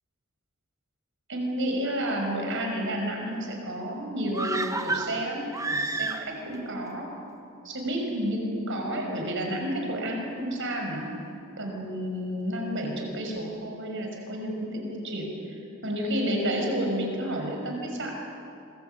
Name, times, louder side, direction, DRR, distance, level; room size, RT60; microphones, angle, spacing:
voice 1, 1.3-7.1 7.6-11.1 11.6-15.3 15.8-18.1, equal, 60° right, 2 dB, 6.0 m, -30 dB
sound 1, 4.3-6.6 6.9-7.0, right 3 dB, 15° right, 1.2 m, -30 dB
26.5 x 21.0 x 9.1 m, 2.6 s
head